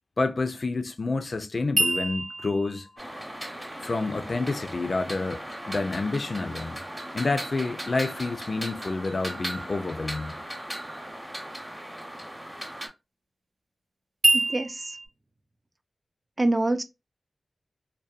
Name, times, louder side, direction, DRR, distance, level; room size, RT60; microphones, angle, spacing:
voice 1, 0.2-2.9 3.8-6.8 7.1-10.4, left 3 dB, 60° left, 0.3 m, -29 dB
sound 1, 1.8-4.9 14.2-15.1, right 2 dB, 75° right, 0.7 m, -27 dB
sound 2, 3.0-12.9, right 1 dB, 15° right, 0.8 m, -38 dB
voice 2, 14.3-15.0 16.4-16.8, right 2 dB, 40° right, 0.4 m, -26 dB
2.6 x 2.1 x 2.4 m
cardioid pair, 45°, 0 cm